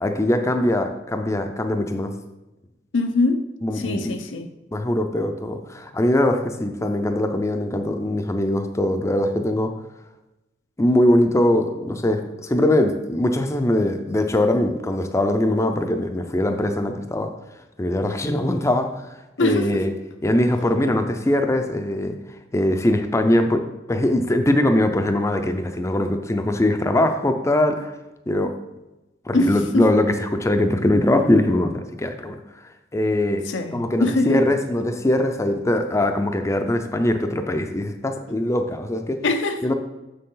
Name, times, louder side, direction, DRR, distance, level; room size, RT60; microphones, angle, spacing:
voice 1, 0.0-2.1 3.6-4.2 4.7-9.7 10.8-17.3 17.8-19.9 20.2-22.2 22.5-27.9 28.3-28.5 29.2-32.4 32.9-33.4 33.7-39.2 39.6-39.7, left 1 dB, 15° left, 0.5 m, -21 dB
voice 2, 2.9-3.5 3.7-4.5 19.4-19.9 29.3-29.9 33.5-34.4 38.3-38.4 39.2-39.6, left 2 dB, 90° left, 0.7 m, -22 dB
6.7 x 6.3 x 3.8 m
head